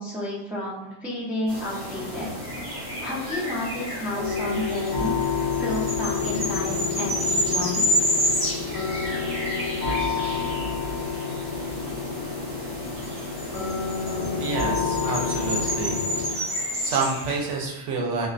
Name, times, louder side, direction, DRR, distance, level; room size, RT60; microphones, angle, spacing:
voice 1, 0.0-2.3 3.0-5.2 5.6-8.1, left 1 dB, ahead, -8 dB, 0.4 m, -31 dB
sound 1, 1.5-17.6, equal, 30° right, 0.8 m, -30 dB
sound 2, 4.1-16.3, left 6 dB, 80° left, 0.9 m, -29 dB
voice 2, 14.4-16.0 16.8-18.3, right 4 dB, 80° right, 0 dB, 0.9 m, -28 dB
2.4 x 2.1 x 2.4 m, 0.88 s
omnidirectional pair, 1.2 m